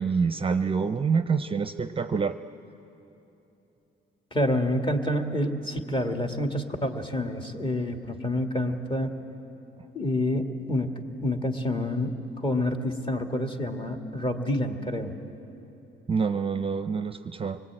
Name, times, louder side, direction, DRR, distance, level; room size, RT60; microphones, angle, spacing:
voice 1, 0.0-2.4 16.1-17.6, right 5 dB, 25° right, 10 dB, 0.6 m, -26 dB
voice 2, 4.3-9.1 9.9-10.9 11.2-15.1, left 1 dB, 25° left, 4 dB, 2.0 m, -28 dB
24.5 x 19.5 x 8.9 m, 2.9 s
cardioid pair, 90°, 20 cm